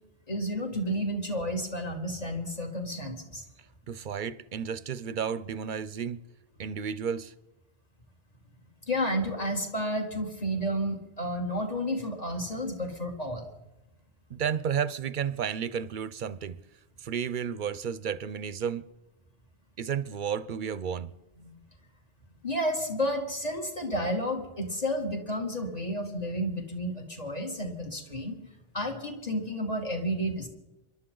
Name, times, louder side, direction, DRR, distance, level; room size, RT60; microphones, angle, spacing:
voice 1, 0.3-3.4 8.9-13.5 21.4-21.5 22.4-28.4 28.7-30.5, equal, 40° left, 2.5 m, -31 dB
voice 2, 3.9-6.2 6.6-7.3 14.3-16.6 17.0-18.8 19.8-21.1, right 7 dB, 55° right, 0.7 m, -32 dB
27.5 x 12.0 x 3.8 m
omnidirectional pair, 1.0 m